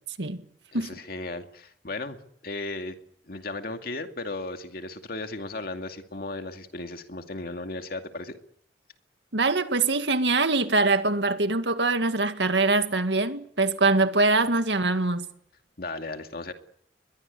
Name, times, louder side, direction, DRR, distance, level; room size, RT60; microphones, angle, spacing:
voice 1, 0.7-3.0 3.3-8.4 15.8-16.5, left 2 dB, 55° left, 2.4 m, -35 dB
voice 2, 9.3-15.3, right 3 dB, 85° right, 2.0 m, -23 dB
23.0 x 21.5 x 8.4 m
head